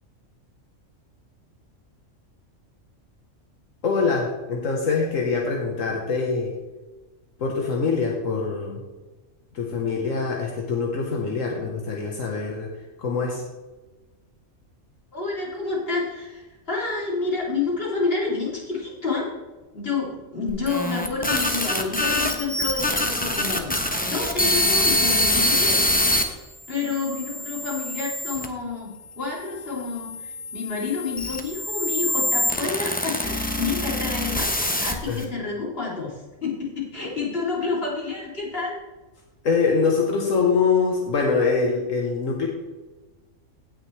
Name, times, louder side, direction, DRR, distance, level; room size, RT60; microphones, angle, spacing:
voice 1, 3.8-6.5 7.4-8.8 9.5-12.7 13.0-13.4 35.1-35.2 39.4-42.5, left 4 dB, 80° left, 0 dB, 1.6 m, -24 dB
voice 2, 15.1-19.3 19.7-23.7 24.0-25.8 26.1-26.4 26.7-38.7, left 4 dB, 45° left, -4 dB, 3.3 m, -29 dB
sound 1, 20.5-26.2 26.9-28.5 29.3-35.2, left 1 dB, 10° left, 0.8 m, -25 dB
17.0 x 6.4 x 3.3 m, 1.2 s
omnidirectional pair, 1.3 m